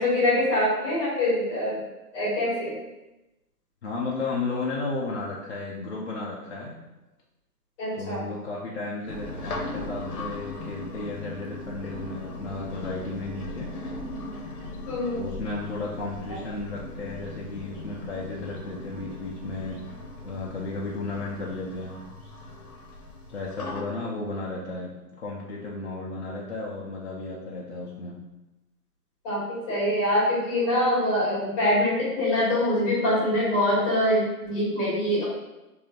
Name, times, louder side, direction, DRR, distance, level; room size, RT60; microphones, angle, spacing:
voice 1, 0.0-1.8 2.1-2.7 7.8-8.2 14.9-15.3 16.3-16.4 29.2-35.2, left 1 dB, 20° left, -8 dB, 1.2 m, -24 dB
voice 2, 3.8-6.7 7.9-13.7 15.1-19.8 20.2-22.0 23.3-24.9 25.2-28.2, left 3 dB, 45° left, -5 dB, 0.4 m, -34 dB
sound 1, 9.1-23.8, left 2 dB, 65° left, 0.8 m, -38 dB
3.2 x 2.6 x 2.3 m, 1.0 s
figure-of-eight pair, 145°, 47 cm